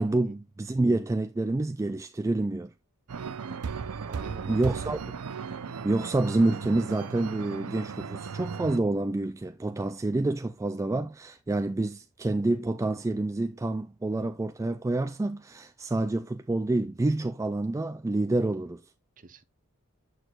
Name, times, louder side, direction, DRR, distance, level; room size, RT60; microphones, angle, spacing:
voice 1, 0.0-2.7 4.5-5.0 5.8-18.8, right 2 dB, 15° right, 0.3 m, -28 dB
sound 1, 3.1-8.8, right 5 dB, 80° right, 0.6 m, -36 dB
voice 2, 4.1-5.0 19.2-19.4, right 3 dB, 40° right, 0.8 m, -45 dB
8.0 x 6.3 x 2.4 m
head